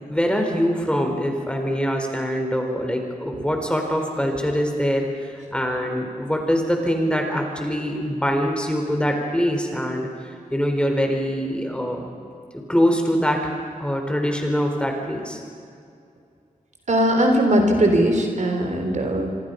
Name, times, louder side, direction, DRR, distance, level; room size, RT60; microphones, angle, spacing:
voice 1, 0.0-12.1 12.7-15.4, equal, 5° left, 2 dB, 4.4 m, -24 dB
voice 2, 16.9-19.4, right 1 dB, 55° right, 4 dB, 3.6 m, -20 dB
26.0 x 25.5 x 5.5 m, 2.3 s
wide cardioid pair, 75°, 14 cm